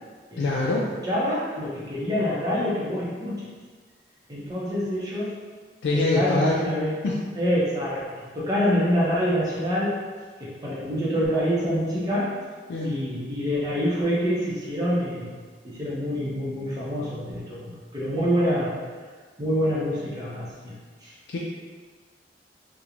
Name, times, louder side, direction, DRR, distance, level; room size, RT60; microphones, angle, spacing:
voice 1, 0.4-0.9 5.8-6.6 7.0-7.2 12.7-12.9 21.3-21.4, left 2 dB, 85° left, -4 dB, 0.3 m, -24 dB
voice 2, 1.0-3.5 4.3-5.4 6.1-6.9 7.4-10.0 10.4-12.4 12.8-15.3 15.6-18.8 19.4-21.1, equal, 20° right, -7 dB, 0.6 m, -26 dB
2.9 x 2.1 x 2.4 m, 1.5 s
head